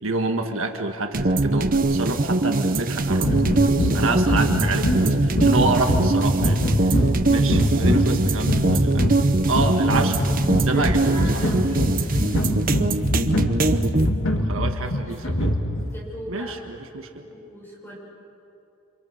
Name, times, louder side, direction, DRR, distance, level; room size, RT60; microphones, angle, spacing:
voice 1, 0.0-6.6 7.3-9.0 9.5-10.2 10.6-11.4 13.7-13.9 14.5-15.5 16.3-16.6 16.9-17.2, right 3 dB, 70° right, 5 dB, 1.5 m, -27 dB
sound 1, 1.1-14.1, right 2 dB, 40° right, 0.9 m, -22 dB
sound 2, 3.2-15.9, equal, 65° left, 2.1 m, -24 dB
voice 2, 10.7-11.9 15.9-16.6 17.2-18.0, equal, 10° left, -4 dB, 6.4 m, -37 dB
29.0 x 26.5 x 6.5 m, 2.7 s
head